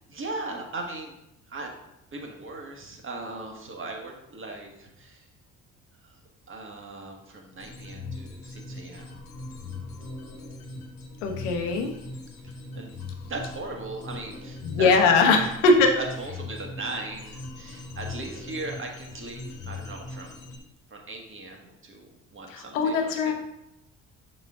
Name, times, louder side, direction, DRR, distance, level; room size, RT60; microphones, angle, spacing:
voice 1, 0.1-1.2 1.5-1.7 2.1-5.2 6.0-6.2 6.5-9.2 12.7-12.9 13.3-14.9 15.2-15.4 16.0-20.4 20.9-23.3, right 2 dB, 30° right, 1 dB, 1.5 m, -38 dB
sound 1, 7.6-20.6, left 3 dB, 60° left, 1.4 m, -40 dB
voice 2, 11.2-11.9 14.6-16.0 22.5-23.3, left 3 dB, 75° left, 3 dB, 1.0 m, -21 dB
6.2 x 4.3 x 3.6 m, 0.83 s
hypercardioid pair, 50°, 38 cm